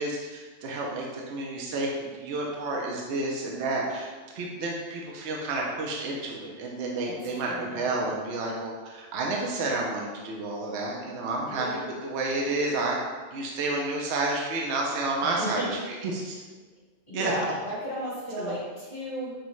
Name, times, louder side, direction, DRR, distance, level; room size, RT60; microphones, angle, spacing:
voice 1, 0.0-13.0 13.3-16.4 17.1-17.3 18.4-18.6, right 2 dB, 70° right, -1 dB, 0.8 m, -30 dB
voice 2, 7.5-8.0 11.5-11.8 15.2-15.7 17.1-19.3, equal, 25° left, -9 dB, 1.4 m, -34 dB
6.1 x 2.1 x 3.0 m, 1.4 s
omnidirectional pair, 1.3 m